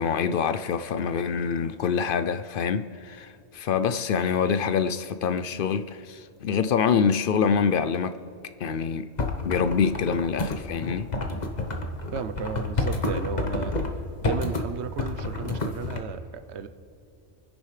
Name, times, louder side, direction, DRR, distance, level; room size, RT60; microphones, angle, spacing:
voice 1, 0.0-8.2 8.6-9.1 9.4-11.1, left 6 dB, 60° left, 0.6 m, -25 dB
sound 1, 9.2-13.9 14.2-14.6 15.0-16.0, left 3 dB, 40° left, 1.2 m, -29 dB
voice 2, 12.1-13.8 14.2-16.7, right 6 dB, 85° right, 1.0 m, -34 dB
27.5 x 10.5 x 3.3 m
omnidirectional pair, 1.1 m